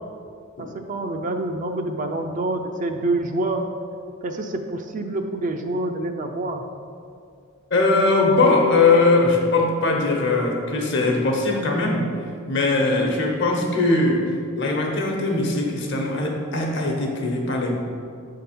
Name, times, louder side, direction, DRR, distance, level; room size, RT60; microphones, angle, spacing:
voice 1, 0.6-3.7 4.2-6.6, right 2 dB, 40° right, 5 dB, 0.5 m, -27 dB
voice 2, 7.7-12.1 12.5-14.3 14.6-17.7, left 3 dB, 60° left, 0 dB, 1.1 m, -20 dB
7.5 x 3.8 x 5.8 m, 2.3 s
head